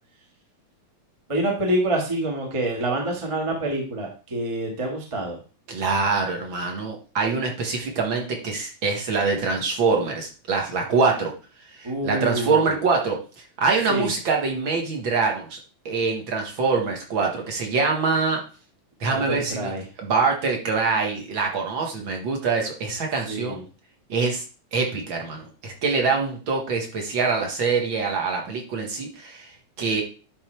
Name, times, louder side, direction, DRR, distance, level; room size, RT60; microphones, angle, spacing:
voice 1, 1.3-5.4 11.8-12.7 13.9-14.1 19.1-19.8 23.3-23.6, right 1 dB, 15° right, 1 dB, 1.2 m, -26 dB
voice 2, 5.7-11.3 11.7-15.6 15.9-18.4 19.0-19.7 20.0-23.6 24.1-24.4 24.7-29.5 29.8-30.0, right 4 dB, 45° right, 2 dB, 2.1 m, -24 dB
10.5 x 4.3 x 4.6 m, 0.36 s
omnidirectional pair, 3.4 m